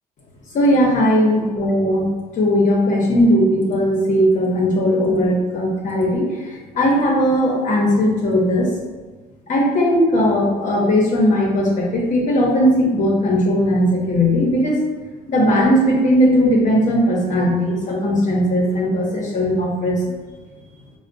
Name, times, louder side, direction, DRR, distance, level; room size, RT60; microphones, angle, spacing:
voice 1, 0.5-2.1 2.4-6.2 6.7-8.7 9.5-14.8 15.3-20.0, equal, 50° left, -3 dB, 0.8 m, -17 dB
4.2 x 2.1 x 2.5 m, 1.3 s
cardioid pair, 110°, 17 cm